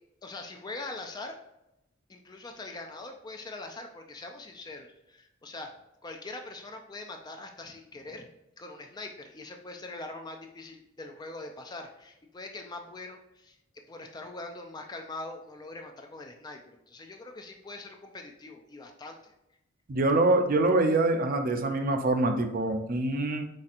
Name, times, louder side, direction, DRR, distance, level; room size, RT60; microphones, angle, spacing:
voice 1, 0.2-1.4 2.1-5.7 6.0-8.3 8.6-13.6 13.9-19.3, left 2 dB, 20° left, 4 dB, 0.3 m, -42 dB
voice 2, 19.9-23.4, right 2 dB, 45° right, 6 dB, 0.5 m, -25 dB
4.2 x 4.2 x 2.5 m, 0.87 s
head